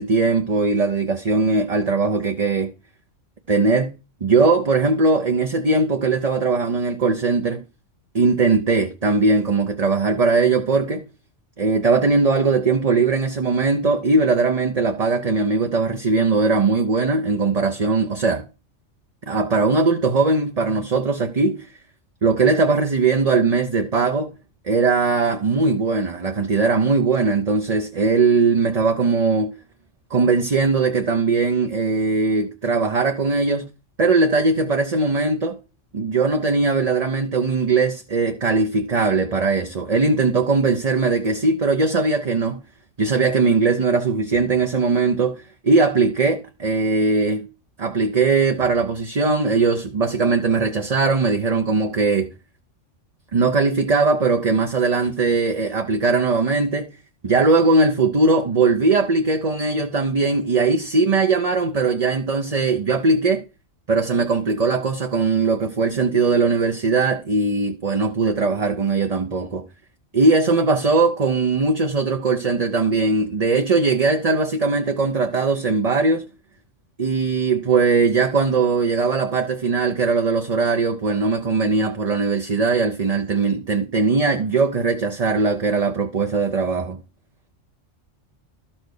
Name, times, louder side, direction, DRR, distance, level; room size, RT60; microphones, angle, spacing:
voice 1, 0.0-2.7 3.5-7.6 8.1-11.1 11.6-18.4 19.3-21.7 22.2-24.3 24.6-29.5 30.1-33.7 34.0-35.6 35.9-42.6 43.0-47.5 47.8-52.3 53.3-56.9 57.2-63.4 63.9-69.6 70.1-76.3 77.0-87.0, right 4 dB, 35° right, 0.8 m, -20 dB
13.0 x 4.5 x 6.5 m
omnidirectional pair, 1.3 m